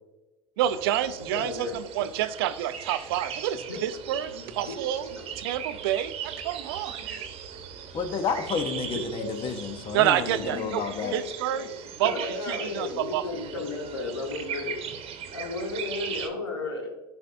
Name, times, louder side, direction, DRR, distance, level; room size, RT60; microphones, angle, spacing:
sound 1, 0.6-16.3, right 7 dB, 50° right, 1.0 m, -39 dB
voice 1, 0.6-5.1 5.4-7.3 9.9-10.8 11.1-11.6 12.0-13.2, right 12 dB, 75° right, 13 dB, 0.5 m, -28 dB
voice 2, 1.3-1.8 3.7-4.8 5.1-5.3 8.6-9.3 10.4-11.2 11.5-11.7 12.0-14.9 15.3-16.9, left 3 dB, 90° left, 1 dB, 1.3 m, -34 dB
voice 3, 7.9-11.2, left 5 dB, 45° left, 8 dB, 1.0 m, -31 dB
11.5 x 4.4 x 2.7 m, 1.1 s
hypercardioid pair, 70°, 13 cm